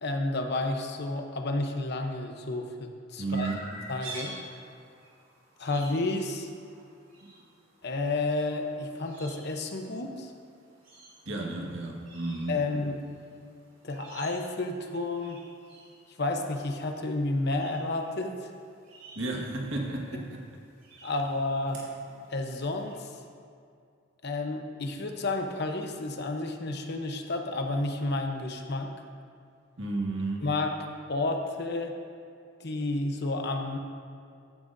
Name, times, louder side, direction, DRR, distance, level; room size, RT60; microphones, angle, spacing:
voice 1, 0.0-3.5 3.9-4.3 5.6-6.5 7.8-10.3 12.5-13.0 13.8-15.4 16.2-18.5 21.0-21.8 22.3-23.1 24.2-28.9 30.4-30.8 31.1-31.9 32.6-33.8, left 2 dB, 55° left, 4 dB, 0.9 m, -31 dB
voice 2, 3.2-3.6 11.3-12.6 19.2-20.5 29.8-30.5, right 2 dB, 65° right, -1 dB, 1.7 m, -32 dB
Chirp tweet, 3.3-22.9, right 2 dB, 40° right, 3.1 m, -50 dB
15.0 x 11.0 x 2.7 m, 2.3 s
head